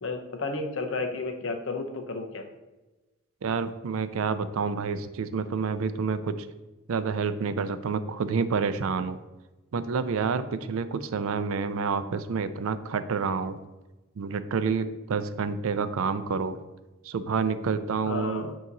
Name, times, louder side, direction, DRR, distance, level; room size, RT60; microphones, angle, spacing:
voice 1, 0.0-2.5 18.1-18.6, left 3 dB, 60° left, 5 dB, 0.7 m, -32 dB
voice 2, 3.4-6.5 6.9-9.2 9.7-13.6 14.2-16.6 17.0-18.5, right 5 dB, 70° right, 12 dB, 0.4 m, -28 dB
8.4 x 2.9 x 3.9 m, 1.1 s
head